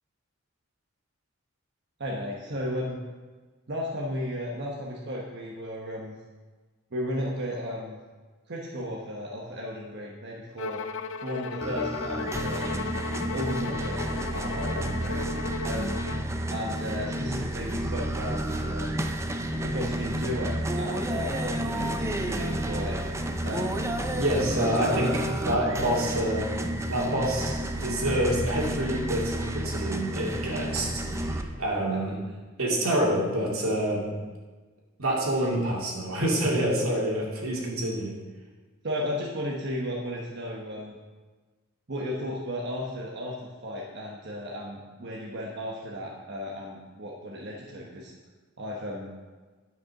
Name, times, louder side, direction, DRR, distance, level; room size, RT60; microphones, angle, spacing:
voice 1, 2.0-3.0 3.7-6.2 6.9-8.0 8.5-10.8 11.2-13.0 13.3-15.2 15.6-16.0 16.5-19.0 19.6-23.0 23.4-23.8 24.7-25.9 38.8-41.0 41.9-48.1 48.6-49.1, equal, 55° right, -3 dB, 1.2 m, -34 dB
Bowed string instrument, 10.6-16.3, left 5 dB, 60° left, 0.5 m, -36 dB
sound 1, 11.6-31.4, right 1 dB, 15° right, 0.5 m, -31 dB
voice 2, 24.2-26.5 26.9-32.2 32.6-34.1 35.0-38.1, right 1 dB, 85° right, -3 dB, 2.6 m, -27 dB
10.5 x 5.9 x 5.9 m, 1.3 s
head